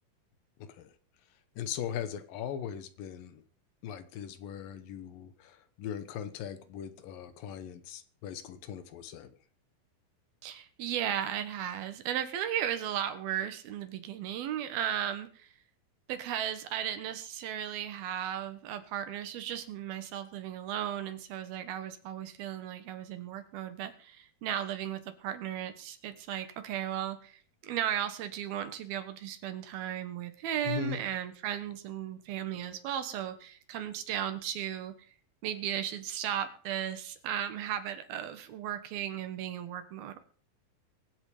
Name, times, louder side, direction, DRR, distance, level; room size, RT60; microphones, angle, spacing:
voice 1, 1.6-3.4 3.8-9.3 30.7-31.0, left 9 dB, 75° left, 2.7 m, -39 dB
voice 2, 10.4-15.5 16.1-34.9 35.4-40.2, right 10 dB, 80° right, 3.3 m, -35 dB
23.5 x 7.9 x 5.0 m
omnidirectional pair, 4.2 m